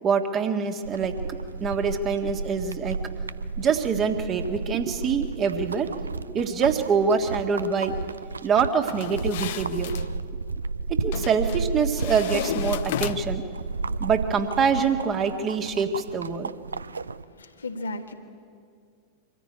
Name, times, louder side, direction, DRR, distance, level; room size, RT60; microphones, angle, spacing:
voice 1, 0.0-3.1 3.6-5.9 6.3-7.9 8.4-9.9 10.9-13.4 14.0-16.5, right 6 dB, 30° right, 5 dB, 1.7 m, -25 dB
sound 1, 0.8-17.2, right 3 dB, 75° right, 0.5 m, -33 dB
sound 2, 8.9-10.1 11.1-11.6 12.0-13.5, left 12 dB, 55° left, 0.6 m, -33 dB
voice 2, 17.3-18.1, left 2 dB, 75° left, 4 dB, 1.6 m, -34 dB
24.5 x 14.5 x 9.8 m, 2.3 s
figure-of-eight pair, 90°, 0 cm